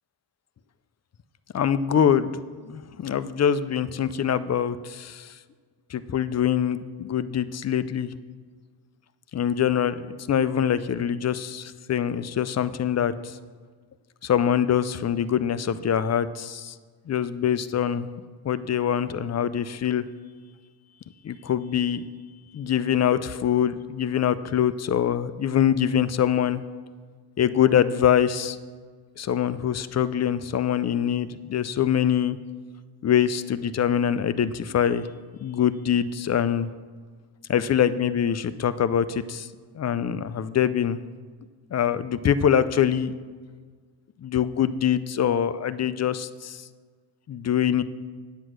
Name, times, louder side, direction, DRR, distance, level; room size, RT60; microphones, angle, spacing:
voice 1, 1.5-2.3 2.7-5.3 5.9-8.1 9.3-10.0 10.3-13.4 14.2-16.7 17.1-18.1 18.4-20.0 21.2-22.0 22.5-26.6 27.4-28.6 29.2-32.4 33.0-35.1 35.4-36.7 37.5-39.5 39.8-41.0 41.7-43.1 44.2-46.6 47.3-47.8, left 9 dB, 40° left, 14 dB, 0.5 m, -24 dB
9.2 x 8.0 x 6.3 m, 1.6 s
cardioid pair, 95°, 42 cm